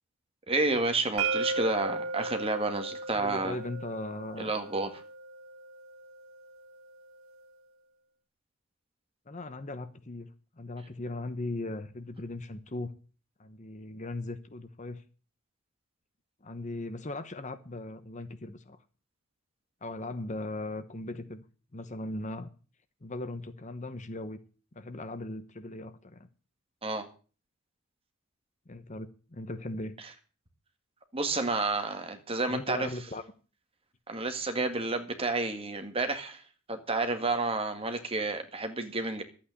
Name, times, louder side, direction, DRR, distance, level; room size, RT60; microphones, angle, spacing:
voice 1, 0.5-3.6 4.4-4.9 26.8-27.0 31.1-32.9 34.1-36.4 36.7-39.2, right 3 dB, 25° right, 1.9 m, -30 dB
sound 1, 1.2-7.0, right 3 dB, 75° right, 0.9 m, -36 dB
voice 2, 3.1-4.6 9.3-10.3 10.6-12.9 13.4-15.0 16.4-18.8 19.8-21.4 21.7-22.5 23.0-24.4 24.7-26.3 28.7-29.9 32.5-33.2, left 2 dB, 35° left, 0.9 m, -38 dB
12.0 x 8.6 x 8.3 m
head